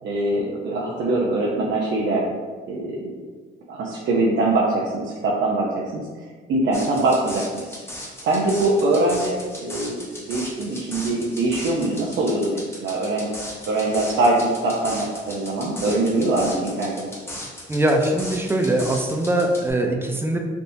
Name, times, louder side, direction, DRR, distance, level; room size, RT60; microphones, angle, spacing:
voice 1, 0.0-2.4 2.7-3.2 3.7-6.0 6.5-7.6 8.2-13.3 13.7-17.1, right 2 dB, 70° right, -4 dB, 0.6 m, -23 dB
sound 1, 6.7-19.7, left 1 dB, 10° left, 0.9 m, -37 dB
voice 2, 17.7-20.4, right 1 dB, 10° right, 2 dB, 0.5 m, -21 dB
3.4 x 2.7 x 2.6 m, 1.5 s
cardioid pair, 90°, 20 cm